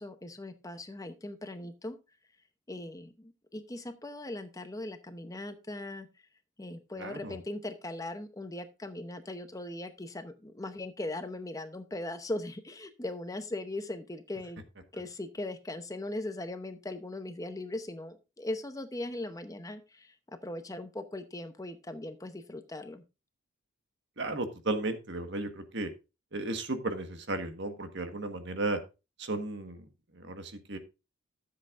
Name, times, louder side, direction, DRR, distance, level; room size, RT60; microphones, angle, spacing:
voice 1, 0.0-2.0 2.7-6.1 6.6-14.6 14.9-20.2 20.4-23.0, left 2 dB, 15° left, 9 dB, 0.8 m, -39 dB
voice 2, 7.0-7.3 24.2-25.9 26.3-28.8 29.2-29.9 30.1-30.8, right 2 dB, 60° right, 7 dB, 1.5 m, -34 dB
13.5 x 7.7 x 2.6 m, 0.28 s
head